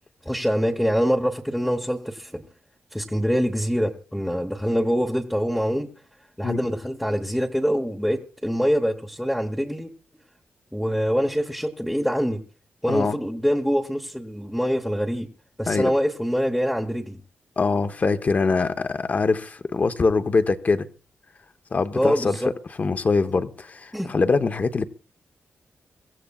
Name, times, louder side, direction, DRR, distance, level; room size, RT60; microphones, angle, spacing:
voice 1, 0.2-2.5 2.9-5.9 6.4-9.9 10.7-12.4 12.8-15.3 15.6-17.2 21.9-22.5 23.9-24.1, equal, ahead, 1.0 m, -24 dB
voice 2, 17.6-20.9 21.7-22.4 22.8-24.9, left 4 dB, 40° left, 0.9 m, -23 dB
24.0 x 15.5 x 2.4 m
wide cardioid pair, 125°, 4 cm